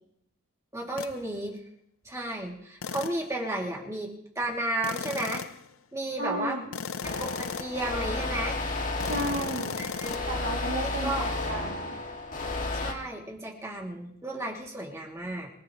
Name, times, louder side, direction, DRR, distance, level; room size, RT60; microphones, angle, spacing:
voice 1, 0.7-1.6 2.0-5.4 5.9-6.6 7.0-8.6 9.8-10.5 11.0-11.3 12.7-15.5, right 1 dB, 15° right, -2 dB, 2.8 m, -33 dB
sound 1, 1.0-1.2 2.8-3.3 4.8-5.7 6.7-7.9 9.0-10.2, left 5 dB, 85° left, 0.6 m, -36 dB
voice 2, 6.2-6.7 9.0-9.8 10.3-12.0, right 1 dB, 65° right, -3 dB, 2.9 m, -33 dB
sound 2, 7.0-12.9, left 2 dB, 40° left, 2.3 m, -32 dB
26.0 x 17.5 x 3.2 m, 0.76 s
head